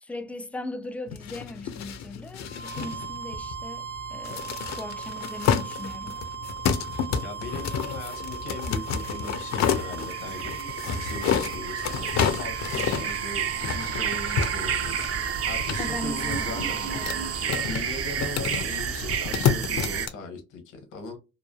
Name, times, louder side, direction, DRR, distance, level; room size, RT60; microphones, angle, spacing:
voice 1, 0.0-6.2 15.8-17.4, left 2 dB, 5° left, 0.3 m, -39 dB
sound 1, 1.1-20.1, left 7 dB, 65° left, 0.5 m, -30 dB
sound 2, 2.4-17.7, right 8 dB, 80° right, 0.8 m, -38 dB
voice 2, 7.2-12.1 12.4-14.9 15.4-16.8 17.7-21.2, left 3 dB, 80° left, 0.9 m, -39 dB
sound 3, 9.0-20.1, right 7 dB, 50° right, 0.5 m, -31 dB
3.1 x 2.0 x 2.2 m
cardioid pair, 90°, 30 cm